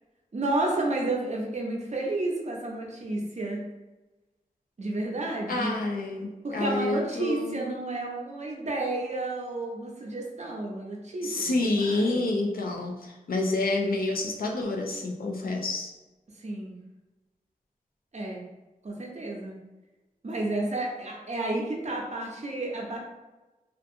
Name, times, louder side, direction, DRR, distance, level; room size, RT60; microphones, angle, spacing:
voice 1, 0.3-3.6 4.8-5.7 6.4-12.3 16.4-16.7 18.1-18.4 18.8-19.5 20.2-23.0, right 2 dB, 50° right, -1 dB, 0.6 m, -31 dB
voice 2, 5.5-7.6 11.2-15.9, left 2 dB, 80° left, 2 dB, 0.4 m, -28 dB
2.5 x 2.3 x 2.6 m, 1.1 s
wide cardioid pair, 80°, 15 cm